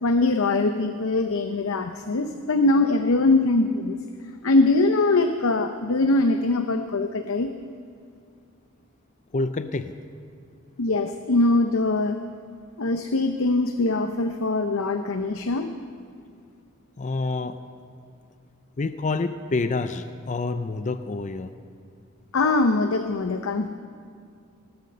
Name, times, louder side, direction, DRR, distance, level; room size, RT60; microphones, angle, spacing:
voice 1, 0.0-4.0 4.4-7.5 10.8-12.2 12.8-15.7 22.3-23.7, left 2 dB, 70° left, 8 dB, 0.6 m, -22 dB
voice 2, 9.3-9.9 17.0-17.6 18.8-21.5, left 3 dB, 35° left, 11 dB, 0.5 m, -27 dB
19.5 x 9.4 x 6.7 m, 2.3 s
head